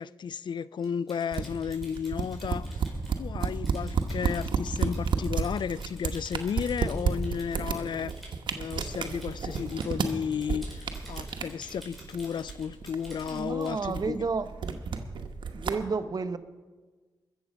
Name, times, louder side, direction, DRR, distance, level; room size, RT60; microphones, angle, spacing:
voice 1, 0.0-2.9 3.2-8.1 8.5-14.2, left 7 dB, 70° left, 0.3 m, -33 dB
Typing, 0.8-13.8, equal, ahead, 4.8 m, -51 dB
sound 1, 1.3-15.7, right 5 dB, 75° right, 1.0 m, -32 dB
voice 2, 13.3-14.8 15.5-16.4, right 4 dB, 50° right, 0.8 m, -31 dB
21.5 x 7.4 x 5.1 m
cardioid pair, 60°, 8 cm